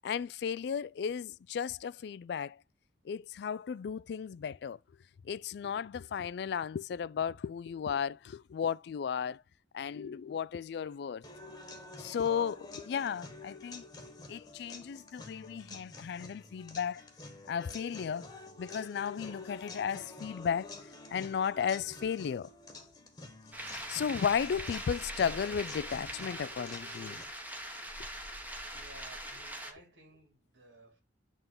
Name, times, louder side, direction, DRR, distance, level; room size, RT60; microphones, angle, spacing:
voice 1, 0.0-2.6 3.0-4.8 5.2-9.4 9.7-11.2 12.0-13.8 14.3-17.0 17.5-18.3 18.6-20.7 21.1-22.5 23.9-27.2, left 7 dB, 60° left, 0.3 m, -34 dB
sound 1, 11.2-27.2, left 3 dB, 20° left, 1.4 m, -49 dB
sound 2, 23.5-29.7, right 1 dB, 10° right, 1.1 m, -42 dB
voice 2, 28.7-31.0, right 2 dB, 75° right, 3.3 m, -57 dB
8.9 x 3.7 x 3.8 m
head